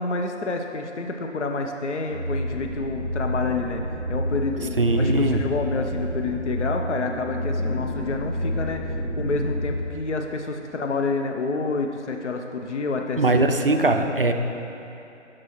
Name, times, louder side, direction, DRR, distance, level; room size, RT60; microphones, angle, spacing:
voice 1, 0.0-3.8 4.1-13.5, left 3 dB, 65° left, 4 dB, 0.6 m, -28 dB
sound 1, 2.1-9.8, equal, 15° right, 0.9 m, -29 dB
voice 2, 4.8-5.5 13.2-14.3, right 2 dB, 50° right, 5 dB, 0.4 m, -20 dB
10.5 x 6.1 x 3.0 m, 2.9 s
figure-of-eight pair, 160°, 37 cm